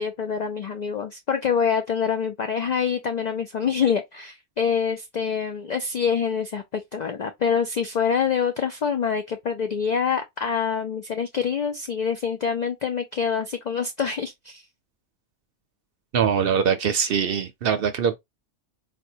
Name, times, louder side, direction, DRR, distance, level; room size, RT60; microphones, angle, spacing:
voice 1, 0.0-14.6, left 7 dB, 70° left, 0.4 m, -26 dB
voice 2, 16.1-18.2, right 7 dB, 60° right, 0.6 m, -22 dB
4.2 x 2.1 x 2.7 m
omnidirectional pair, 1.3 m